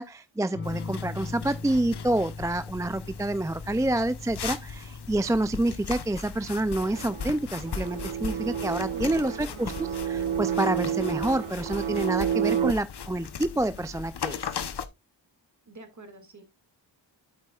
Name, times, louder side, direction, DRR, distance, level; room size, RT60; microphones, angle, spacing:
voice 1, 0.0-14.4, right 1 dB, 10° right, 0.3 m, -28 dB
sound 1, 0.5-9.6 11.1-11.6, left 3 dB, 30° left, 1.1 m, -42 dB
sound 2, 0.6-14.9, left 6 dB, 60° left, 0.9 m, -38 dB
sound 3, 6.8-12.7, right 9 dB, 85° right, 0.6 m, -30 dB
voice 2, 8.9-9.7 15.7-16.4, right 2 dB, 40° right, 2.1 m, -46 dB
8.5 x 8.3 x 2.3 m
wide cardioid pair, 120°, 45 cm